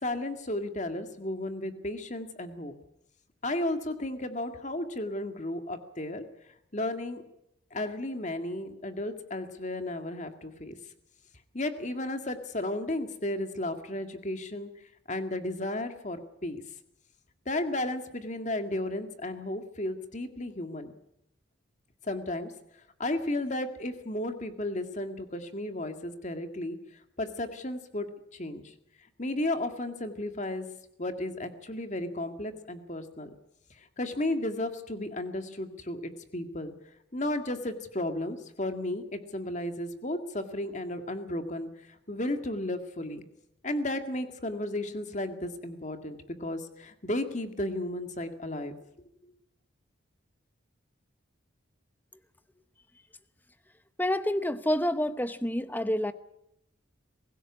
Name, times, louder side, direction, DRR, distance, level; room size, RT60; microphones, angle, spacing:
voice 1, 0.0-2.7 3.4-6.2 6.7-7.2 7.7-10.8 11.5-14.7 15.1-16.6 17.5-20.9 22.0-22.5 23.0-26.8 27.2-28.1 28.3-28.7 29.2-30.7 31.0-33.3 34.0-36.7 37.1-41.7 42.1-43.2 43.6-48.7, left 1 dB, 35° left, 2.0 m, -33 dB
voice 2, 54.0-56.1, left 1 dB, 10° left, 0.8 m, -28 dB
23.5 x 16.0 x 9.7 m
head